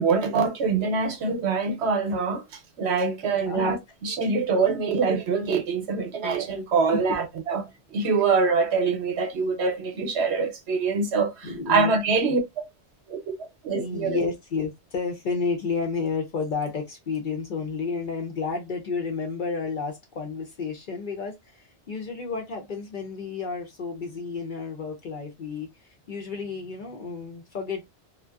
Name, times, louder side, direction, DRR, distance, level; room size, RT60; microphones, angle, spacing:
voice 1, 0.0-2.4 2.8-3.8 4.0-7.6 7.9-12.4 13.1-13.3 13.6-14.2, right 4 dB, 70° right, 0.9 m, -24 dB
voice 2, 3.4-3.8 6.9-7.2 11.4-12.0 13.7-27.8, left 4 dB, 55° left, 0.6 m, -31 dB
2.5 x 2.2 x 2.3 m
omnidirectional pair, 1.2 m